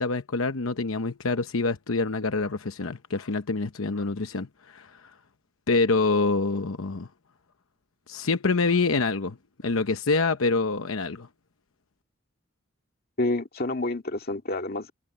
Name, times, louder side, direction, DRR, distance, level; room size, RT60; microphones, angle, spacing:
voice 1, 0.0-4.9 5.7-7.1 8.1-9.4 9.6-11.3, left 3 dB, 85° left, 0.9 m, -26 dB
voice 2, 13.2-14.9, left 2 dB, 50° left, 2.0 m, -28 dB
head